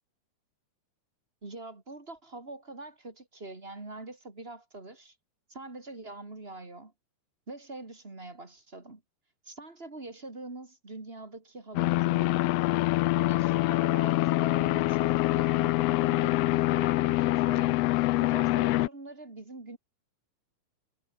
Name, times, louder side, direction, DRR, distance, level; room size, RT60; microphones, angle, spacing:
voice 1, 1.4-5.1 5.5-6.9 7.5-9.0 9.4-12.4 13.2-19.8, right 2 dB, 20° right, 2.8 m, -44 dB
sound 1, 11.8-18.9, left 18 dB, 85° left, 1.4 m, -25 dB
omnidirectional pair, 3.4 m